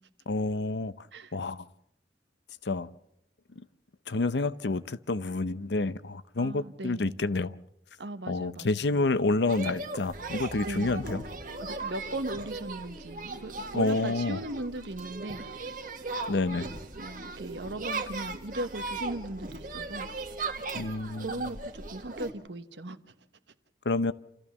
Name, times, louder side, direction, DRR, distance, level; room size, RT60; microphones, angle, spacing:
voice 1, 0.3-1.1 1.3-1.7 2.6-2.9 4.1-7.5 8.3-11.2 13.7-14.4 16.3-16.7 20.7-21.3 23.8-24.1, left 3 dB, 75° left, 0.7 m, -29 dB
voice 2, 6.4-7.2 8.0-9.0 10.6-11.0 11.6-15.4 17.0-20.1 21.2-23.0, right 1 dB, 80° right, 1.2 m, -38 dB
sound 1, 9.5-22.3, right 3 dB, 50° right, 1.8 m, -38 dB
28.0 x 14.5 x 7.1 m
head